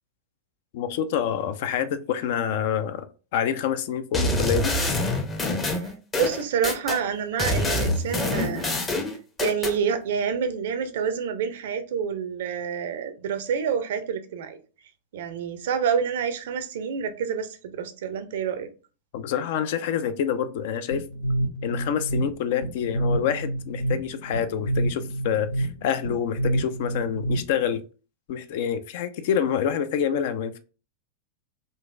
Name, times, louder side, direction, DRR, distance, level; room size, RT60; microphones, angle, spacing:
voice 1, 0.7-3.1 3.3-4.7 19.1-21.0 21.6-27.8 28.3-30.6, left 8 dB, 50° left, 0.4 m, -27 dB
sound 1, 4.1-7.0 7.4-9.8, left 1 dB, 20° left, 0.7 m, -26 dB
voice 2, 5.7-8.7 9.4-14.6 15.1-18.7, right 7 dB, 55° right, 0.5 m, -28 dB
sound 2, 20.9-27.8, right 1 dB, 70° left, 0.8 m, -28 dB
3.8 x 2.5 x 2.4 m
figure-of-eight pair, 90°, 0 cm